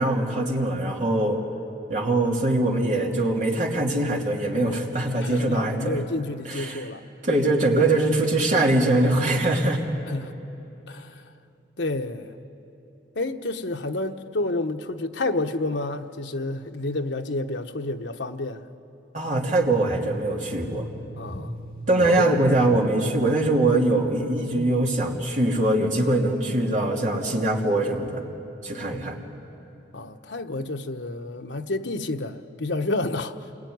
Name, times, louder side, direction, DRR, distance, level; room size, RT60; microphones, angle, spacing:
voice 1, 0.0-1.4 1.9-6.0 6.5-6.8 7.2-9.8 19.1-20.9 21.9-28.2 28.6-29.2, right 2 dB, 45° right, 0 dB, 2.8 m, -22 dB
voice 2, 5.2-7.0 10.1-10.3 10.9-11.2 11.8-12.3 13.1-18.6 21.1-21.6 22.0-22.4 28.9-29.1 29.9-33.4, left 2 dB, 80° left, 5 dB, 1.1 m, -30 dB
sound 1, 19.6-25.6, equal, 50° left, 1.7 m, -40 dB
28.0 x 21.5 x 9.5 m, 3.0 s
head